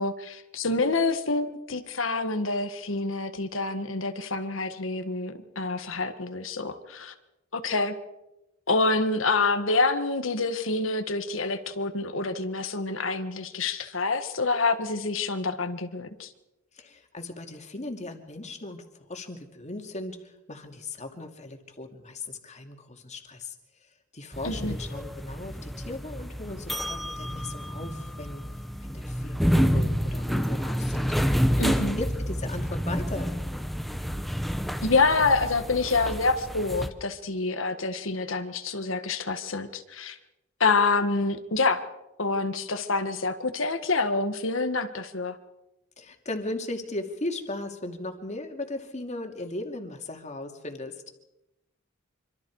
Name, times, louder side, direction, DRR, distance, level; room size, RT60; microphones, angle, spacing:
voice 1, 0.0-7.1 7.5-7.9 8.7-16.3 24.4-24.7 31.6-32.0 34.8-40.2 40.6-41.8 42.2-45.4, left 3 dB, 70° left, 8 dB, 1.6 m, -27 dB
voice 2, 16.7-23.6 23.8-28.5 28.8-31.1 32.0-33.3 46.0-51.0, left 2 dB, 35° left, 4 dB, 2.5 m, -37 dB
sound 1, 24.3-36.9, equal, ahead, 1.1 m, -29 dB
26.0 x 25.5 x 4.8 m, 0.95 s
head